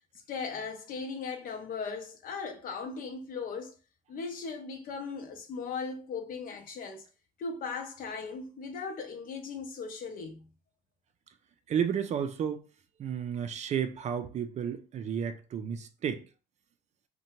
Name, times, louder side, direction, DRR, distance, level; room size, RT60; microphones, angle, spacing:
voice 1, 0.3-3.7 4.1-7.0 7.4-10.5, left 5 dB, 55° left, 0.6 m, -38 dB
voice 2, 11.7-12.6 13.0-16.3, right 8 dB, 45° right, 0.4 m, -32 dB
2.7 x 2.2 x 2.9 m
cardioid pair, 110°, 17 cm